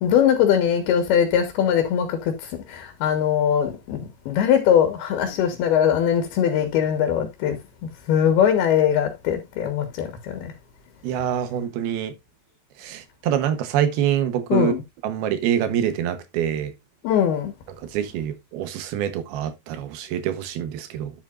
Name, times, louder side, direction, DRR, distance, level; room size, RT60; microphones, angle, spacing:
voice 1, 0.0-2.3 2.7-7.6 8.1-10.5 14.5-14.8 17.0-17.5, left 9 dB, 85° left, 3.3 m, -21 dB
voice 2, 11.0-12.1 12.8-14.7 15.0-16.7 17.9-21.1, right 10 dB, 80° right, 2.9 m, -25 dB
10.5 x 7.6 x 2.5 m
omnidirectional pair, 4.4 m